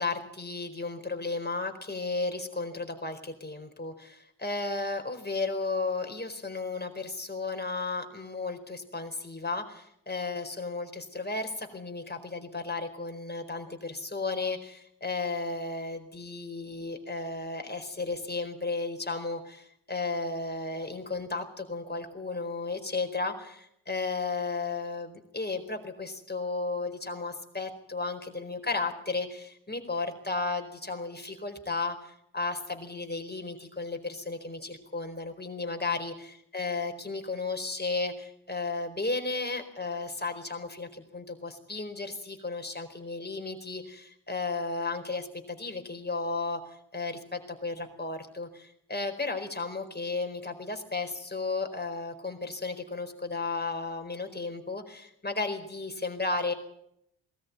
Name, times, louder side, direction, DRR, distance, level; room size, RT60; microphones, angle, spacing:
voice 1, 0.0-46.6 46.9-56.5, left 3 dB, 20° left, 5 dB, 4.6 m, -34 dB
20.5 x 13.5 x 9.7 m, 0.76 s
cardioid pair, 55°, 49 cm